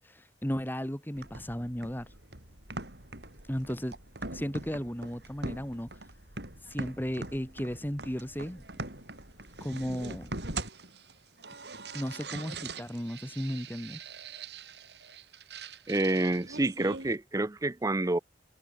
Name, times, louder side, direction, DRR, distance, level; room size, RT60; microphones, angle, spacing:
voice 1, 0.1-2.1 3.5-4.0 4.3-5.9 6.7-8.6 9.6-10.4 11.9-14.0, equal, 10° left, 1.8 m, -35 dB
sound 1, 1.1-17.2, right 3 dB, 75° right, 6.3 m, -43 dB
voice 2, 15.9-18.2, right 2 dB, 20° right, 0.5 m, -28 dB
head